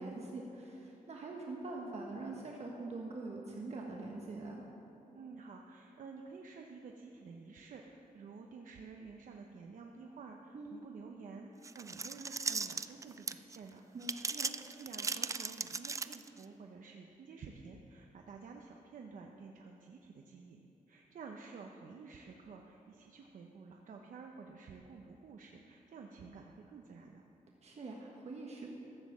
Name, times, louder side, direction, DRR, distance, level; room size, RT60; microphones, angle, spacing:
voice 1, 0.0-4.6 10.5-10.8 13.9-14.5 27.6-28.7, right 2 dB, 50° right, -1 dB, 1.3 m, -44 dB
voice 2, 5.1-14.3 14.7-20.6 20.9-27.2, right 4 dB, 65° right, 2 dB, 0.8 m, -51 dB
sound 1, 11.6-13.6 14.0-16.4, right 4 dB, 20° right, 0.3 m, -37 dB
14.0 x 7.5 x 7.4 m, 3.0 s
wide cardioid pair, 140°, 14 cm